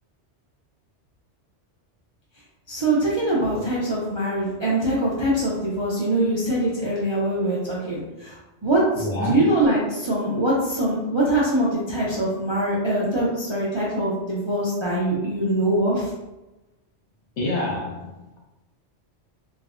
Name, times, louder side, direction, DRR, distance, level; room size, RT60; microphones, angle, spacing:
voice 1, 2.7-16.1, right 1 dB, 50° right, -7 dB, 0.3 m, -23 dB
voice 2, 9.0-9.4 17.4-18.4, left 1 dB, 80° left, -2 dB, 1.0 m, -27 dB
3.2 x 2.1 x 2.4 m, 1.0 s
omnidirectional pair, 1.2 m